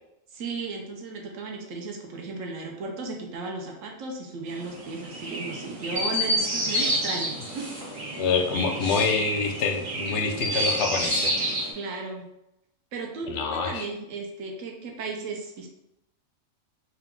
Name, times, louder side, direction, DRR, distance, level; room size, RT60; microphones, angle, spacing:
voice 1, 0.3-7.6 11.7-12.3 12.9-15.7, right 3 dB, 70° right, 1 dB, 1.0 m, -35 dB
Chirp tweet, 4.5-11.7, right 1 dB, 45° right, 1.3 m, -29 dB
voice 2, 8.1-11.3 13.3-13.9, left 5 dB, 65° left, 3 dB, 0.8 m, -26 dB
3.8 x 2.3 x 3.6 m, 0.86 s
omnidirectional pair, 1.5 m